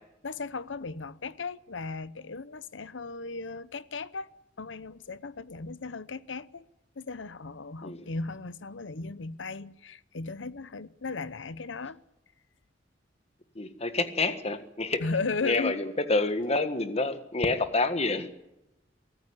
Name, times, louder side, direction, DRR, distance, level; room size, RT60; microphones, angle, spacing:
voice 1, 0.2-4.3 4.6-6.7 7.0-12.0 15.0-15.8, left 3 dB, 85° left, 0.9 m, -36 dB
voice 2, 13.5-15.0 15.4-18.3, left 3 dB, 35° left, 1.6 m, -28 dB
23.0 x 14.5 x 9.7 m
head